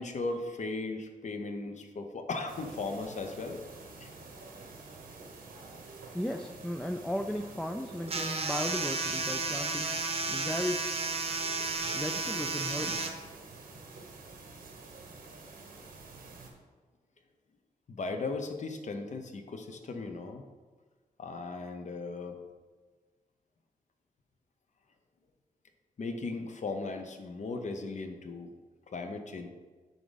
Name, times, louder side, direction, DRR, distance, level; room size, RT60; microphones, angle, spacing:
voice 1, 0.0-3.6 4.0-4.1 11.2-11.3 17.9-20.4 21.2-22.4 26.0-28.5 28.9-29.5, left 3 dB, 55° left, 6 dB, 0.9 m, -37 dB
sound 1, 2.5-16.5, right 3 dB, 80° right, 1.2 m, -48 dB
voice 2, 6.1-9.9 10.3-10.9 11.9-13.1, left 1 dB, 5° left, 5 dB, 0.4 m, -35 dB
sound 2, 8.1-13.1, right 3 dB, 45° right, 0.8 m, -33 dB
10.5 x 3.7 x 4.0 m, 1.4 s
cardioid pair, 85°, 15 cm